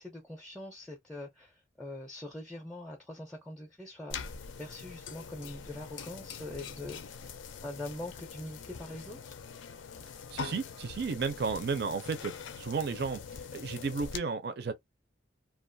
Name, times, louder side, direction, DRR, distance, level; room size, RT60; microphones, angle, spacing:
voice 1, 0.0-7.2 7.6-9.4, left 1 dB, 5° left, 0.5 m, -43 dB
sound 1, 4.1-14.2, left 6 dB, 80° left, 0.4 m, -43 dB
voice 2, 10.3-14.7, right 5 dB, 55° right, 0.4 m, -33 dB
2.4 x 2.2 x 2.6 m
head